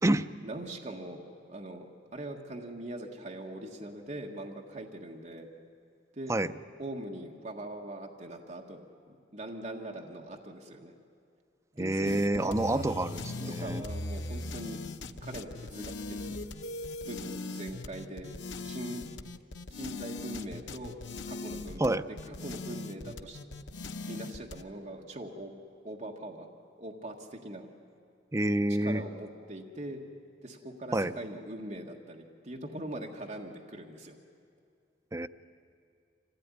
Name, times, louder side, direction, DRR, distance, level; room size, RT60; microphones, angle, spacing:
voice 1, 0.4-1.2 1.5-1.8 2.1-5.5 6.2-6.3 6.8-10.9 11.7-12.8 13.5-14.8 15.2-16.4 17.1-18.4 18.6-19.1 19.7-20.9 21.3-22.0 22.3-23.4 24.1-25.5 25.8-26.5 26.8-27.7 28.8-30.0 30.4-34.2, right 1 dB, 40° right, 1 dB, 1.6 m, -41 dB
voice 2, 11.8-13.8 21.8-22.1 28.3-29.0 30.9-31.1 35.1-35.3, right 1 dB, 15° right, 9 dB, 0.5 m, -28 dB
sound 1, 12.0-24.6, left 2 dB, 80° left, 0.9 m, -40 dB
25.0 x 16.5 x 9.8 m, 2.4 s
head